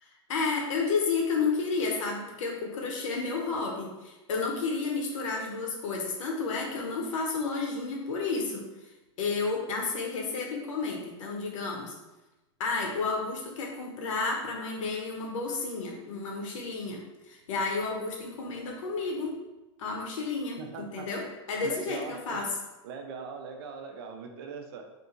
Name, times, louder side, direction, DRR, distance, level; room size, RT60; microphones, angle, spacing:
voice 1, 0.0-8.9 9.2-11.9 12.6-19.3 19.8-21.2 21.5-22.5, left 4 dB, 85° left, -1 dB, 0.7 m, -31 dB
voice 2, 20.6-21.1 21.6-22.4 22.8-24.8, right 5 dB, 50° right, 4 dB, 0.4 m, -40 dB
2.7 x 2.5 x 3.8 m, 1.0 s
supercardioid pair, 175°, 16 cm